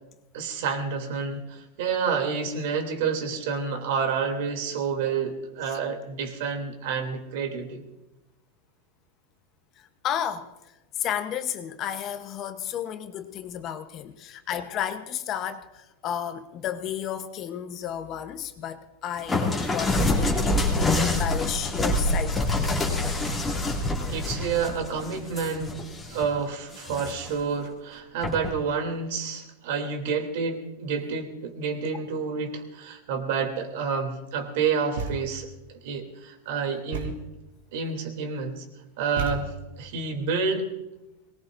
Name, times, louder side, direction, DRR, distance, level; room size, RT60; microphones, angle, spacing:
voice 1, 0.3-7.8 23.5-25.8 26.1-37.1 37.7-38.6 39.0-39.5 39.8-40.7, right 5 dB, 60° right, 5 dB, 2.9 m, -29 dB
voice 2, 9.8-22.7, left 9 dB, 30° left, 8 dB, 0.9 m, -33 dB
sound 1, 19.3-26.3 26.7-27.4 28.2-28.5, left 2 dB, 10° left, 2.3 m, -26 dB
Thump thud, 35.0-35.5 36.9-37.4 39.2-39.8, right 4 dB, 90° right, 3.4 m, -33 dB
23.0 x 19.5 x 2.6 m, 0.97 s
supercardioid pair, 160°, 0 cm